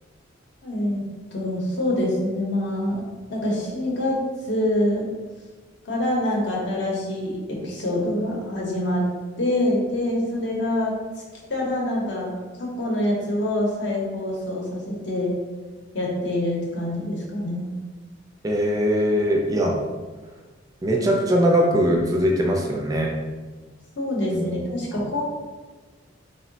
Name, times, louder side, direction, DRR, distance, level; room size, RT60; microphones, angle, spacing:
voice 1, 0.6-1.0 1.3-4.2 4.5-5.1 5.8-9.0 9.4-10.9 11.5-15.3 15.9-17.7 24.0-25.2, left 1 dB, 65° left, -2 dB, 0.8 m, -25 dB
voice 2, 18.4-19.8 20.8-23.1 24.3-24.5, equal, 20° right, 0 dB, 0.3 m, -21 dB
3.7 x 2.0 x 2.6 m, 1.3 s
head